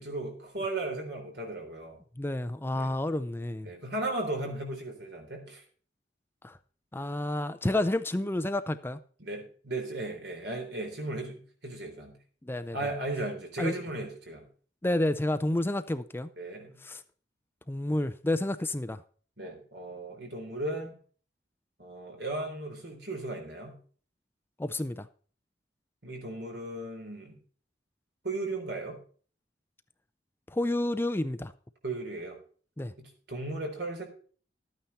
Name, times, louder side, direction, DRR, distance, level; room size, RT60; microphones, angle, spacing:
voice 1, 0.0-2.0 2.7-3.0 3.6-5.6 9.2-12.1 12.7-14.5 16.4-16.8 19.4-21.0 21.8-23.8 26.0-27.4 28.2-29.0 31.8-32.4 33.0-34.0, right 2 dB, 65° right, 3.8 m, -36 dB
voice 2, 2.2-3.7 6.4-6.6 6.9-9.0 12.4-12.8 13.6-13.7 14.8-16.3 16.8-17.0 17.7-19.0 24.6-25.1 30.5-31.5 32.8-32.9, left 1 dB, 15° left, 0.5 m, -30 dB
13.0 x 9.1 x 4.2 m
head